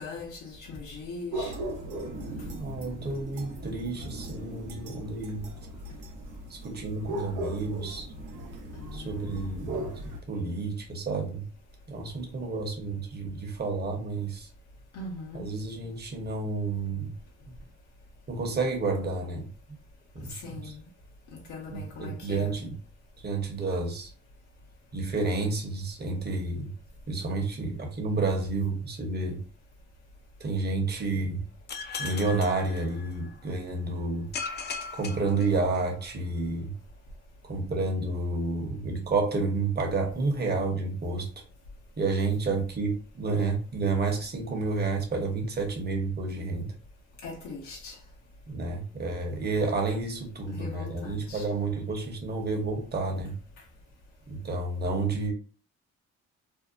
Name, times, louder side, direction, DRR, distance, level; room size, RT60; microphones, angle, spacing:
voice 1, 0.0-1.6 8.8-9.3 14.9-15.5 20.3-20.9 21.3-22.6 47.2-48.0 50.5-51.5, left 3 dB, 80° left, 0.7 m, -40 dB
sound 1, 1.3-10.2, right 1 dB, 85° right, 0.7 m, -38 dB
voice 2, 2.6-5.4 6.5-8.1 8.9-11.5 11.9-14.5 15.3-17.1 18.3-19.5 20.1-20.7 21.7-22.7 23.2-24.1 24.9-26.7 27.1-29.4 30.4-31.5 32.0-34.3 34.9-36.7 37.4-41.3 42.0-46.7 48.5-53.4 54.3-55.3, right 3 dB, 35° right, 0.8 m, -30 dB
sound 2, 31.7-33.4 34.3-36.1, left 5 dB, 35° left, 0.4 m, -38 dB
2.6 x 2.1 x 2.5 m
cardioid pair, 90°, 30 cm